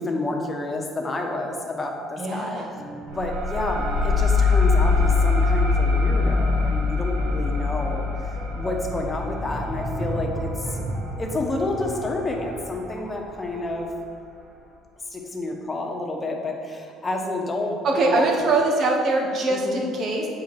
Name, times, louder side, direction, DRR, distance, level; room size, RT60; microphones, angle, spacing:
voice 1, 0.0-8.1 8.5-10.8 11.2-13.9 15.1-18.2 19.5-19.8, left 2 dB, 20° left, 2 dB, 1.1 m, -29 dB
voice 2, 2.2-2.7 9.3-9.7 17.8-20.3, right 2 dB, 55° right, 0 dB, 1.4 m, -23 dB
sound 1, 2.8-14.2, right 1 dB, 30° right, 1.1 m, -36 dB
sound 2, 3.1-12.3, left 4 dB, 70° right, 1.0 m, -23 dB
8.0 x 4.7 x 4.5 m, 2.3 s
supercardioid pair, 95°, 0 cm